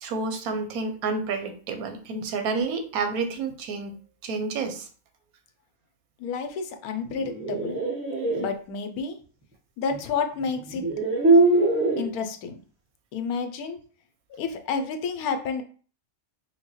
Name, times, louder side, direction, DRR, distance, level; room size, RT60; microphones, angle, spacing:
voice 1, 0.0-3.9 4.2-4.9, right 4 dB, 85° right, 7 dB, 1.1 m, -29 dB
voice 2, 6.2-7.8 8.4-9.2 9.8-10.8 12.0-12.6 13.1-13.8 14.4-15.6, left 5 dB, 90° left, 7 dB, 1.1 m, -30 dB
sound 1, 7.1-8.5 9.9-10.0 10.7-12.1, right 2 dB, 10° right, 1.0 m, -22 dB
5.3 x 2.1 x 3.0 m, 0.41 s
omnidirectional pair, 1.5 m